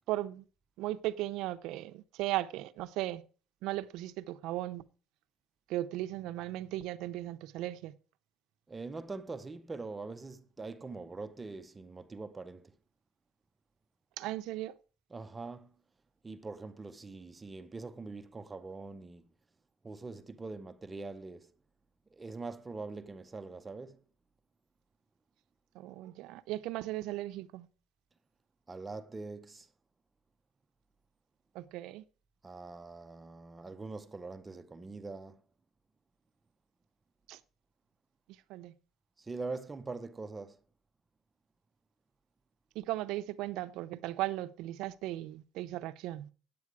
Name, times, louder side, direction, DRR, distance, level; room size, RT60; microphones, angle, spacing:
voice 1, 0.1-0.4 0.8-3.2 3.6-4.8 5.7-7.9 14.2-14.8 25.7-27.7 31.5-32.0 37.3-37.4 38.5-38.7 42.7-46.3, right 16 dB, 80° right, 0.7 m, -37 dB
voice 2, 8.7-12.8 15.1-15.7 16.2-19.3 19.8-21.5 22.1-24.0 28.7-29.7 32.4-35.4 39.2-40.6, right 3 dB, 15° right, 0.6 m, -43 dB
9.6 x 8.4 x 4.8 m
cardioid pair, 160°, 0 cm